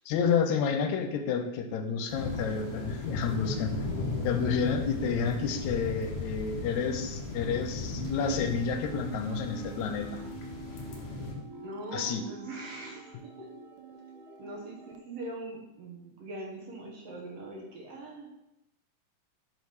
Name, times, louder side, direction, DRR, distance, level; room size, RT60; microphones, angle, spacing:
voice 1, 0.1-3.8 4.2-10.2 11.9-12.2, left 6 dB, 85° left, 6 dB, 1.9 m, -30 dB
sound 1, 2.1-11.3, left 3 dB, 65° left, 1.0 m, -36 dB
sound 2, 8.0-15.0, right 5 dB, 90° right, 2.1 m, -46 dB
voice 2, 11.6-13.5 14.4-18.3, right 2 dB, 65° right, -1 dB, 1.9 m, -42 dB
5.3 x 4.7 x 4.7 m, 0.88 s
omnidirectional pair, 3.3 m